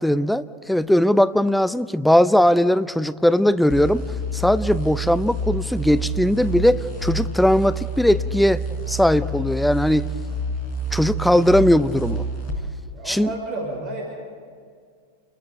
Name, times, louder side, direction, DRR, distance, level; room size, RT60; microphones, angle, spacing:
voice 1, 0.0-4.0 4.3-10.1 10.9-12.3 13.1-13.3, left 1 dB, ahead, 14 dB, 0.5 m, -19 dB
sound 1, 3.7-12.6, right 2 dB, 40° left, 4.4 m, -28 dB
voice 2, 12.9-14.0, right 2 dB, 35° right, -1 dB, 5.7 m, -31 dB
28.5 x 13.5 x 8.0 m, 2.1 s
figure-of-eight pair, 90°, 0 cm